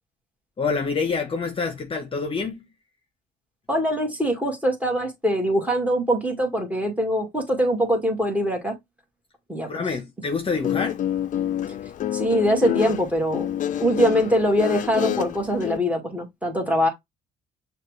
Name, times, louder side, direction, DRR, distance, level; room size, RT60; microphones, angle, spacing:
voice 1, 0.6-2.6 9.7-11.0, left 4 dB, 30° left, 1.0 m, -27 dB
voice 2, 3.7-8.7 9.5-9.7 12.1-13.5 13.8-16.9, equal, 10° right, 1.9 m, -23 dB
Guitar, 10.5-15.8, left 11 dB, 50° left, 0.6 m, -27 dB
6.4 x 2.5 x 3.2 m
cardioid pair, 110°, 17 cm